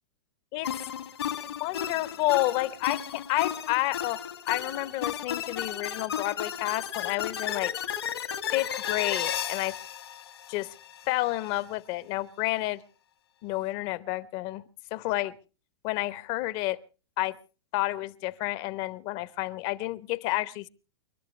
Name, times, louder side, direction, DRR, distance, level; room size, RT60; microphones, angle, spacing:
sound 1, 0.6-11.0, left 9 dB, 80° left, 2.1 m, -34 dB
voice 1, 1.4-7.7 8.5-9.8 10.5-10.7 11.1-12.8 13.4-14.6 14.9-15.3 15.8-16.8 17.2-17.4 17.7-20.7, left 18 dB, 45° left, 17 dB, 0.8 m, -30 dB
29.5 x 12.0 x 3.2 m, 0.34 s
hypercardioid pair, 110°, 13 cm